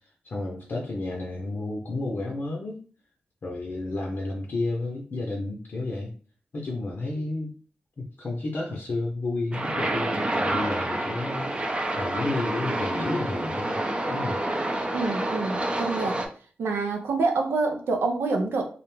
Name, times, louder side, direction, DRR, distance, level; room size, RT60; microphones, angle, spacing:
voice 1, 0.2-2.8 3.4-6.1 6.5-7.5 8.0-13.8 14.1-14.4, left 2 dB, 60° left, -1 dB, 0.6 m, -31 dB
sound 1, 9.5-16.3, right 1 dB, 30° right, 0.5 m, -28 dB
voice 2, 14.9-16.3 16.6-18.6, right 3 dB, 85° right, 3 dB, 0.5 m, -27 dB
2.5 x 2.0 x 3.1 m, 0.41 s
cardioid pair, 45°, 4 cm